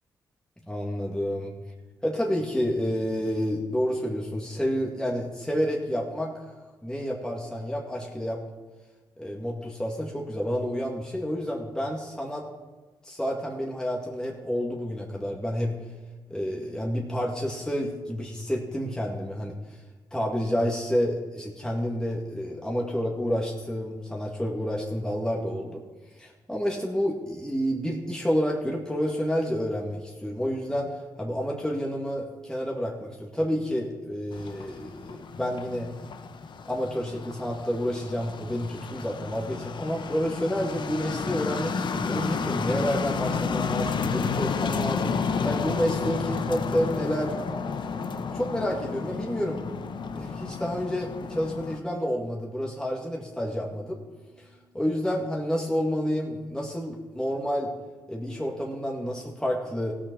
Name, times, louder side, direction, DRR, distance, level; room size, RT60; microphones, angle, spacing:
voice 1, 0.7-1.5 2.0-6.4 6.8-8.4 9.2-12.5 13.0-15.7 16.3-19.8 20.1-25.8 26.2-35.9 36.7-47.3 48.2-49.8 50.1-54.0 54.4-54.5 54.7-57.7 58.1-59.9, equal, 10° left, -2 dB, 2.1 m, -29 dB
sound 1, 34.3-51.8, left 5 dB, 60° left, 0.8 m, -31 dB
Bass guitar, 48.5-54.8, left 4 dB, 80° left, 2.2 m, -54 dB
15.0 x 6.3 x 6.3 m, 1.3 s
supercardioid pair, 50°, 9 cm